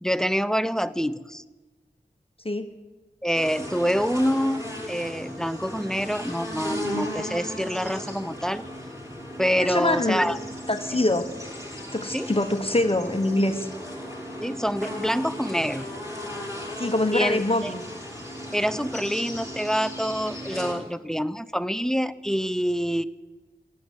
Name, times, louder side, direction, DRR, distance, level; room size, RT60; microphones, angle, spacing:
voice 1, 0.0-1.4 3.2-8.7 9.4-10.4 12.1-12.3 14.4-15.9 17.1-17.7 18.5-23.0, equal, 5° left, 14 dB, 0.6 m, -26 dB
sound 1, 3.3-20.7, equal, 20° right, 6.4 m, -36 dB
voice 2, 9.6-10.3 10.7-11.3 11.9-13.7 16.8-17.8, left 2 dB, 35° left, 7 dB, 1.1 m, -24 dB
14.0 x 10.5 x 9.2 m, 1.2 s
wide cardioid pair, 45°, 17 cm